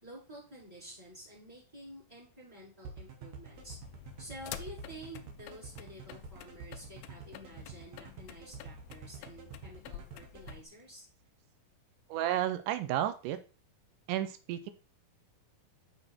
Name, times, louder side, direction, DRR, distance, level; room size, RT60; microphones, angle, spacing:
voice 1, 0.0-3.8 4.2-11.1, right 1 dB, 5° right, 3.9 m, -50 dB
sound 1, 2.9-10.6, right 5 dB, 65° right, 1.9 m, -47 dB
sound 2, 3.5-10.7, left 11 dB, 85° left, 2.4 m, -49 dB
voice 2, 12.1-13.4 14.1-14.7, right 12 dB, 80° right, 1.9 m, -32 dB
6.4 x 6.3 x 4.4 m
omnidirectional pair, 4.3 m